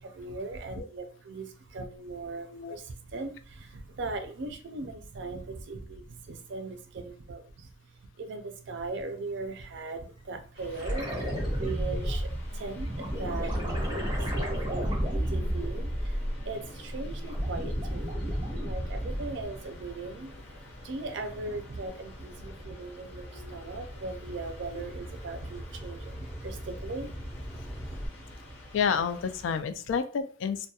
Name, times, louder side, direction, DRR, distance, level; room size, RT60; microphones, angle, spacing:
voice 1, 0.0-7.7 8.0-27.1 27.5-28.0 28.4-28.8, right 3 dB, 65° right, 7 dB, 0.4 m, -39 dB
sound 1, 10.5-29.6, left 1 dB, 65° left, 0.8 m, -47 dB
sound 2, 10.7-16.5 16.9-19.4 21.9-22.0, equal, 25° right, 0.7 m, -31 dB
sound 3, 15.9-19.5 20.1-28.1, equal, 15° left, 0.5 m, -45 dB
voice 2, 28.7-30.7, left 6 dB, 80° left, 10 dB, 0.3 m, -30 dB
2.3 x 2.1 x 2.8 m, 0.40 s
head